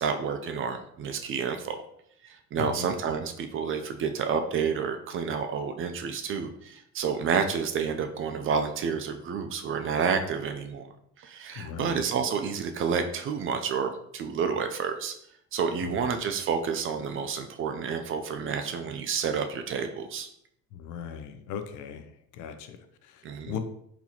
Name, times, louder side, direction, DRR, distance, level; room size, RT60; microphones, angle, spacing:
voice 1, 0.0-1.8 2.2-10.9 11.2-15.1 15.5-20.3 23.2-23.6, right 6 dB, 40° right, 7 dB, 0.4 m, -29 dB
voice 2, 2.6-2.9 11.6-12.0 15.8-16.1 20.7-23.6, left 8 dB, 70° left, 8 dB, 0.5 m, -38 dB
4.0 x 2.9 x 2.9 m, 0.71 s
cardioid pair, 110°, 32 cm